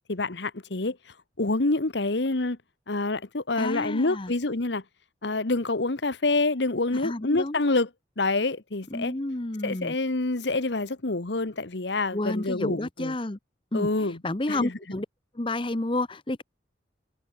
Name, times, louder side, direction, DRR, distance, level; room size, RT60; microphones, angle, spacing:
voice 1, 0.1-1.0 1.4-2.6 2.9-4.8 5.2-7.9 8.2-9.1 9.6-13.1 13.7-14.2 14.5-14.7, left 2 dB, 70° left, 1.3 m, -27 dB
voice 2, 3.6-4.3 6.9-7.6 8.9-9.9 12.1-13.4 13.7-15.1 15.3-16.4, left 2 dB, 25° left, 0.9 m, -30 dB
head